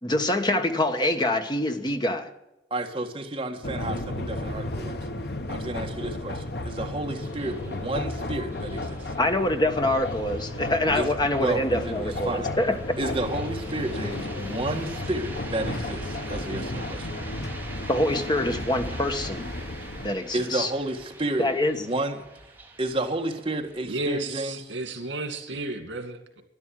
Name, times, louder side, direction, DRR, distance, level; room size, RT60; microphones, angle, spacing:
voice 1, 0.0-2.3 9.2-13.0 17.9-19.4 20.0-20.7 21.4-21.8, left 1 dB, 25° left, 6 dB, 1.3 m, -25 dB
voice 2, 2.7-5.0 5.5-9.0 10.9-11.1 11.3-12.5 13.0-17.1 20.3-21.5 21.8-22.2 22.8-24.6, right 1 dB, 30° right, 2 dB, 1.7 m, -31 dB
sound 1, 3.6-20.1, left 1 dB, 60° left, 1.1 m, -33 dB
sound 2, 5.3-24.3, right 2 dB, 10° right, 1.6 m, -45 dB
voice 3, 23.9-26.4, right 2 dB, 85° right, 7 dB, 2.3 m, -32 dB
12.5 x 11.0 x 7.6 m, 0.94 s
head